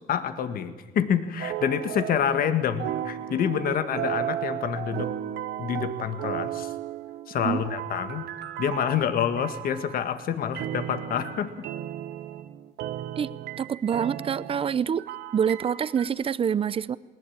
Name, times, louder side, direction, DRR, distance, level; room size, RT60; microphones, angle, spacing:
voice 1, 0.1-5.1 5.6-6.7 7.3-8.2 8.6-11.5, left 8 dB, 60° left, 10 dB, 1.8 m, -27 dB
sound 1, 1.4-2.5 2.8-10.0 10.5-16.1, right 12 dB, 80° right, 1.2 m, -35 dB
voice 2, 13.6-17.0, right 7 dB, 35° right, 19 dB, 0.6 m, -26 dB
20.0 x 19.5 x 8.8 m, 1.2 s
cardioid pair, 110°, 17 cm